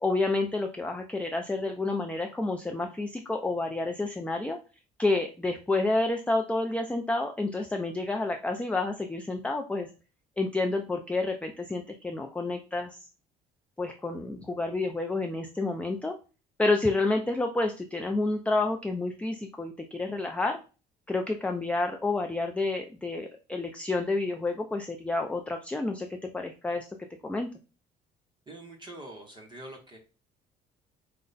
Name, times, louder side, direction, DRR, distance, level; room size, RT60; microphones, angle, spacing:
voice 1, 0.0-4.6 5.0-9.9 10.4-13.0 13.8-16.1 16.6-20.6 21.1-26.1 26.3-26.9 27.2-27.5, left 2 dB, 5° left, 4 dB, 0.4 m, -29 dB
voice 2, 28.5-30.0, right 1 dB, 25° right, 2 dB, 1.0 m, -44 dB
4.7 x 2.2 x 3.9 m, 0.34 s
cardioid pair, 110°, 17 cm